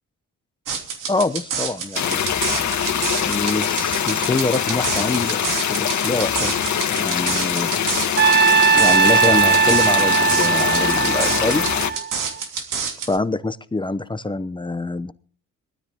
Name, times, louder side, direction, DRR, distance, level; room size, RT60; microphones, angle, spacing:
sound 1, 0.7-13.2, right 6 dB, 75° right, 2.8 m, -28 dB
voice 1, 1.1-2.2 3.2-6.5 6.9-7.7 8.7-11.7 13.1-15.1, left 3 dB, 15° left, 13 dB, 0.8 m, -25 dB
sound 2, 1.9-11.9, left 8 dB, 60° left, 2.0 m, -23 dB
Trumpet, 8.2-12.4, right 6 dB, 30° right, 1.0 m, -18 dB
19.5 x 13.0 x 3.7 m, 0.43 s
cardioid pair, 105°, 32 cm